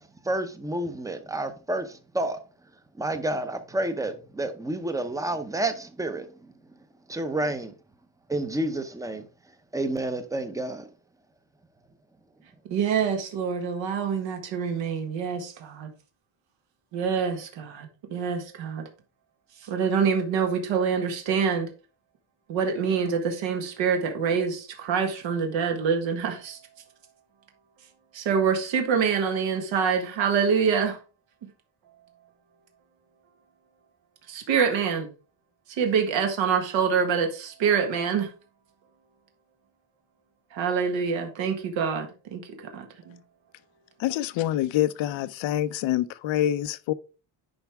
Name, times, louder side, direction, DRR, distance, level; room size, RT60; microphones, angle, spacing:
voice 1, 0.0-2.4 2.9-6.5 7.1-7.7 8.3-9.3 9.7-10.9, right 1 dB, 5° right, 0.7 m, -30 dB
voice 2, 12.7-15.9 16.9-18.8 19.6-21.7 22.5-26.6 28.1-31.0 34.3-35.1 35.8-38.3 40.5-42.1 42.3-43.2, right 6 dB, 75° right, 1.6 m, -26 dB
voice 3, 44.0-46.9, left 12 dB, 80° left, 0.7 m, -26 dB
10.5 x 4.6 x 3.4 m
cardioid pair, 170°, 46 cm